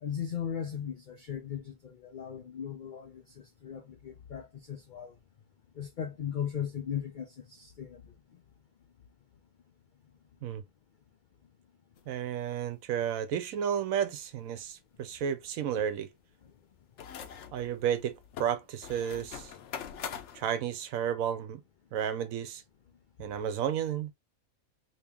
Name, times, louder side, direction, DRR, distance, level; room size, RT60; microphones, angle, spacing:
voice 1, 0.0-5.2 5.8-8.1 15.7-15.8, left 8 dB, 85° left, 0.4 m, -38 dB
sound 1, 12.0-12.1 12.4-12.5 17.0-20.4, left 8 dB, 65° left, 0.9 m, -43 dB
voice 2, 12.1-16.1 17.5-19.5 20.3-21.6 21.9-22.6 23.2-24.1, right 9 dB, 80° right, 1.0 m, -32 dB
2.9 x 2.9 x 3.4 m
omnidirectional pair, 1.5 m